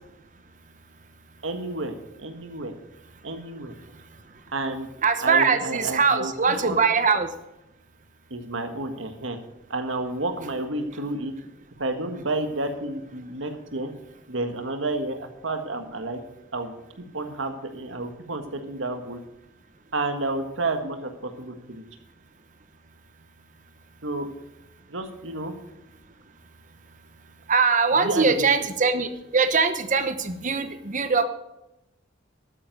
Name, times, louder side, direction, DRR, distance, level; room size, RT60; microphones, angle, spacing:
voice 1, 1.4-2.7 3.2-3.7 4.5-4.9 5.2-6.3 6.6-6.8 8.3-9.4 9.7-11.3 11.8-13.9 14.3-16.2 16.5-19.2 19.9-21.8 24.0-24.3 24.9-25.5 28.0-28.4, right 2 dB, 80° right, 6 dB, 1.6 m, -30 dB
voice 2, 3.8-4.2 5.0-7.3 27.5-31.2, right 5 dB, 40° right, 10 dB, 1.0 m, -22 dB
12.0 x 9.4 x 5.4 m, 0.90 s
head